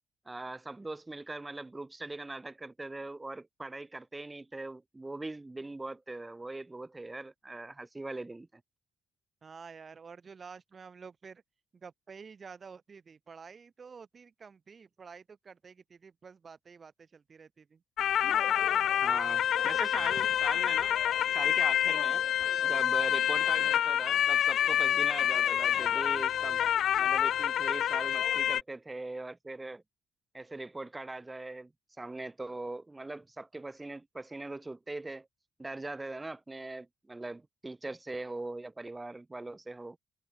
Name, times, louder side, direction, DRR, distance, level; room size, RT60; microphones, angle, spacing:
voice 1, 0.3-8.6 19.0-21.0 21.3-22.2 22.6-26.6 27.0-29.8 30.3-31.7 32.0-35.3 35.6-40.0, right 2 dB, 15° right, 5.9 m, -41 dB
voice 2, 9.4-11.4 11.7-17.8, right 5 dB, 40° right, 6.2 m, -50 dB
sound 1, 18.0-28.6, left 10 dB, 65° left, 0.8 m, -27 dB
supercardioid pair, 75°, 0 cm